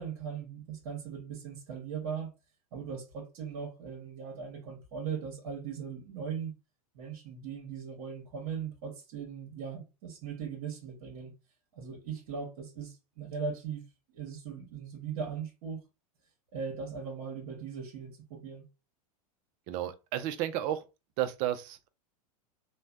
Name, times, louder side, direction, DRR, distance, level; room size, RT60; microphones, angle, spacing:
voice 1, 0.0-2.3 2.7-6.5 6.9-11.3 11.7-13.8 14.1-15.8 16.5-18.7, right 6 dB, 65° right, 1.0 m, -39 dB
voice 2, 19.7-20.9 21.2-21.9, right 12 dB, 50° right, 0.5 m, -32 dB
3.1 x 2.1 x 2.4 m
hypercardioid pair, 105°, 19 cm